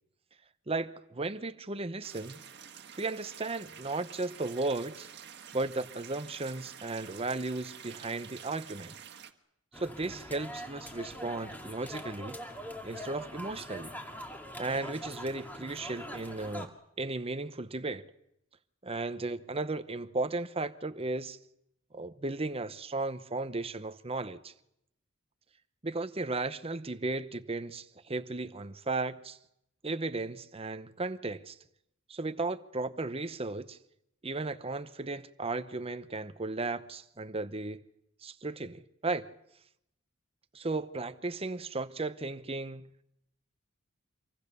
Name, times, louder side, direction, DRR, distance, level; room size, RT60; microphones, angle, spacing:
voice 1, 0.7-2.4 3.0-5.1 5.5-8.9 9.8-12.4 12.8-14.0 14.6-18.0 18.8-21.4 21.9-24.5 25.8-29.4 29.8-31.5 32.1-33.8 34.2-37.8 38.2-39.3 40.5-42.9, right 3 dB, 30° right, 0.9 m, -35 dB
sound 1, 2.0-9.3, right 8 dB, 55° right, 1.6 m, -49 dB
sound 2, 9.7-16.7, equal, 10° left, 2.4 m, -43 dB
26.0 x 24.0 x 6.8 m
head